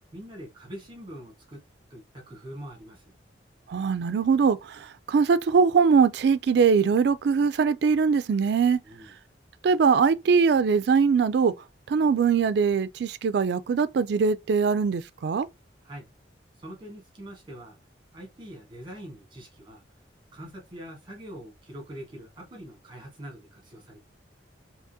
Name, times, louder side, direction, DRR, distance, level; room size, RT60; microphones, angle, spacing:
voice 1, 0.1-1.6 1.9-3.1 8.8-9.1 15.8-16.0 16.6-17.8 18.1-19.8 20.3-24.0, equal, 25° right, 1.3 m, -43 dB
voice 2, 3.7-8.8 9.6-11.5 11.9-15.5, right 5 dB, 60° right, 0.3 m, -22 dB
3.6 x 2.8 x 2.7 m
head